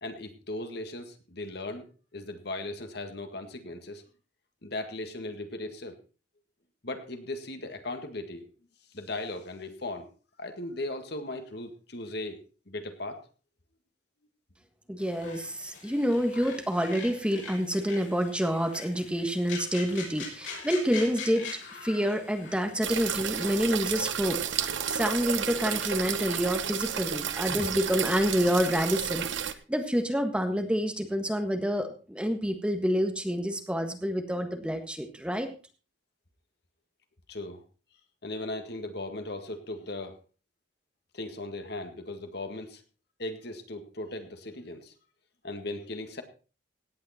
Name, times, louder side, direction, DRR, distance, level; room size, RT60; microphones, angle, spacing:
voice 1, 0.0-4.0 4.6-6.0 6.8-8.5 8.9-10.1 10.4-12.4 12.7-13.2 37.3-37.6 38.2-40.2 41.1-42.8 43.2-44.9 45.4-46.2, left 2 dB, 55° left, 7 dB, 1.8 m, -37 dB
voice 2, 14.9-21.5 21.8-24.4 24.9-35.5, equal, 5° right, 5 dB, 1.5 m, -28 dB
sound 1, 15.0-28.4, left 5 dB, 80° left, 6.0 m, -45 dB
sound 2, 22.8-29.5, right 8 dB, 75° right, 1.0 m, -32 dB
17.0 x 9.0 x 4.3 m, 0.36 s
head